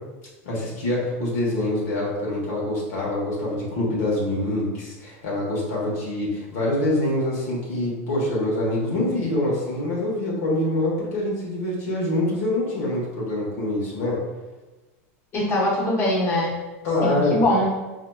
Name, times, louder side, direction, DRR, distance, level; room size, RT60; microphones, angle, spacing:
voice 1, 0.4-14.2 16.8-17.4, left 1 dB, 75° left, -5 dB, 1.2 m, -25 dB
voice 2, 15.3-16.6 17.0-17.8, left 1 dB, 35° left, -6 dB, 1.1 m, -22 dB
4.1 x 2.8 x 2.3 m, 1.2 s
supercardioid pair, 125°, 8 cm